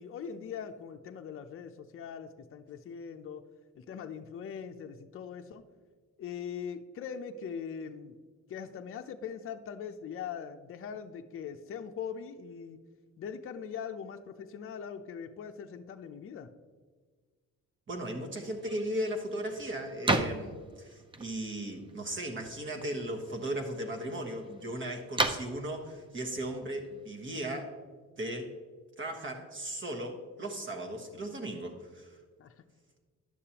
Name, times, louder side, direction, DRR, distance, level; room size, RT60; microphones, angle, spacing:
voice 1, 0.0-3.5 3.8-5.6 6.2-8.2 8.5-12.8 13.2-16.5 32.4-32.5, left 7 dB, 45° left, 7 dB, 0.6 m, -41 dB
voice 2, 17.9-27.8 28.2-28.5 29.0-32.2, right 1 dB, 40° right, 3 dB, 1.3 m, -37 dB
sound 1, 18.4-27.6, right 2 dB, 15° right, 0.6 m, -37 dB
10.0 x 6.6 x 2.9 m, 1.5 s
cardioid pair, 90°, 30 cm